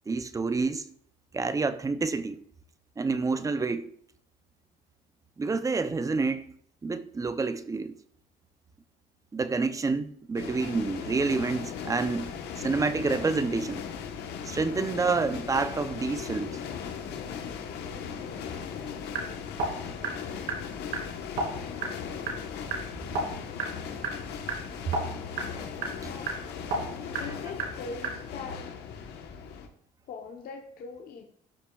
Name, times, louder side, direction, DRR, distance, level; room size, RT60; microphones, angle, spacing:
voice 1, 0.1-0.9 1.3-2.4 3.0-3.9 5.4-6.4 6.8-7.9 9.3-12.3 12.6-13.8 14.5-16.5 24.9-25.0, right 4 dB, 20° right, 0.5 m, -28 dB
sound 1, 10.3-29.7, left 7 dB, 80° left, 1.1 m, -38 dB
sound 2, 19.0-28.5, right 3 dB, 80° right, 2.6 m, -36 dB
voice 2, 27.2-28.6 30.1-31.2, left 4 dB, 60° left, 0.9 m, -41 dB
12.5 x 5.7 x 2.3 m
cardioid pair, 110°, 17 cm